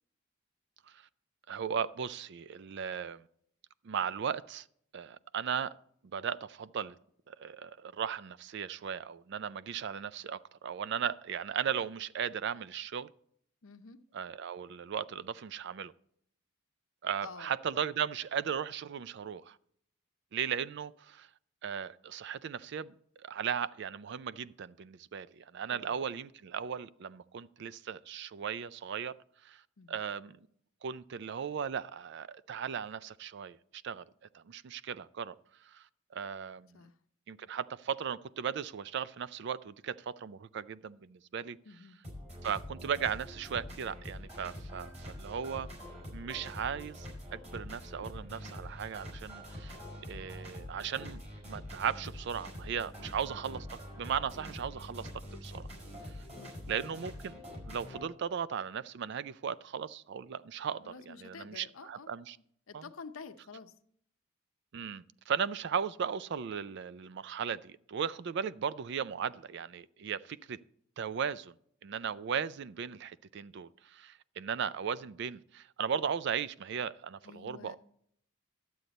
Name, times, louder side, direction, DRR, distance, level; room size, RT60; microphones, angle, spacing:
voice 1, 1.5-3.2 3.8-4.7 4.9-5.7 6.1-7.0 7.3-13.1 14.1-15.9 17.0-19.6 20.3-21.3 21.6-29.1 29.4-29.6 29.9-30.4 30.8-34.1 34.3-35.3 35.6-35.9 36.1-36.7 37.3-41.6 42.4-44.9 45.2-45.7 46.1-47.1 47.3-49.8 50.1-55.1 55.4-55.7 56.7-57.4 57.7-62.4 62.7-62.8 64.7-70.6 71.0-71.5 71.8-77.7, right 7 dB, 55° right, 0.4 m, -37 dB
voice 2, 13.6-14.0 17.2-17.5 25.7-26.0 29.8-30.0 36.7-36.9 41.7-42.0 53.0-53.4 56.3-56.8 60.8-62.1 62.7-63.7 77.2-77.7, left 4 dB, 75° left, 0.7 m, -49 dB
sound 1, 42.0-58.1, equal, 30° right, 4.8 m, -45 dB
11.5 x 7.8 x 4.1 m
head